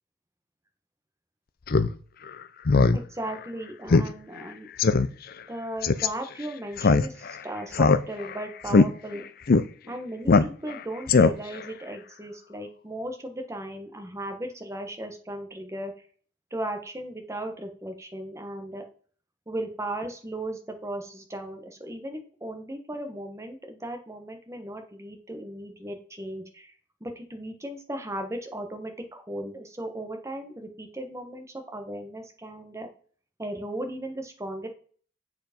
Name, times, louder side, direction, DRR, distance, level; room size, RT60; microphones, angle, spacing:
Speech synthesizer, 1.7-1.9 2.3-2.4 2.7-3.0 3.3-3.4 3.9-4.1 4.4-4.5 4.8-5.1 5.8-6.1 6.8-7.4 7.7-8.3 8.7-8.9 9.5-9.6 10.3-10.8 11.1-11.6, left 4 dB, 50° left, 0.5 m, -19 dB
voice 1, 2.9-4.7 5.5-9.2 9.9-15.9 16.5-18.9 19.5-26.7 27.0-32.9 33.4-34.7, right 1 dB, 15° right, 5 dB, 1.3 m, -36 dB
7.7 x 4.7 x 5.2 m, 0.44 s
head